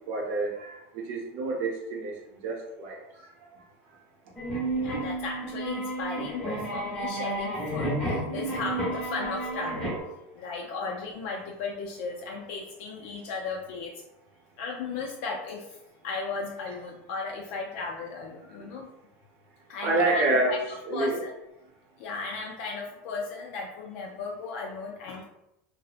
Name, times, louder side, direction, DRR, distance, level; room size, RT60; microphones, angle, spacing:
voice 1, 0.1-3.3 3.9-4.0 9.7-10.1 18.5-18.7 19.8-20.6 20.9-21.2, right 2 dB, 60° right, -1 dB, 0.7 m, -29 dB
sound 1, 4.4-10.0, right 1 dB, 5° left, 0.9 m, -31 dB
voice 2, 4.7-9.9 10.4-13.9 14.6-15.8 16.0-18.9 19.7-21.3 22.0-25.2, left 4 dB, 65° left, -1 dB, 0.4 m, -36 dB
2.7 x 2.0 x 2.4 m, 0.87 s
supercardioid pair, 150°, 7 cm